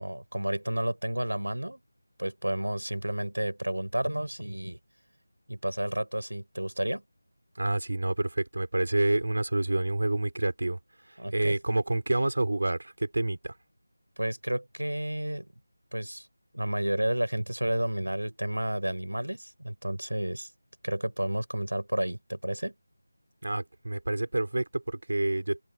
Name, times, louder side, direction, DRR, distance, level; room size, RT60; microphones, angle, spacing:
voice 1, 0.0-1.8 2.2-4.8 5.5-7.0 11.2-11.6 14.2-15.5 15.9-16.3 16.5-20.5 20.8-22.7, right 1 dB, 85° right, 5.9 m, -31 dB
voice 2, 7.6-10.8 11.1-13.6 23.4-25.6, right 2 dB, 65° right, 4.7 m, -28 dB
open air
figure-of-eight pair, 165°, 0 cm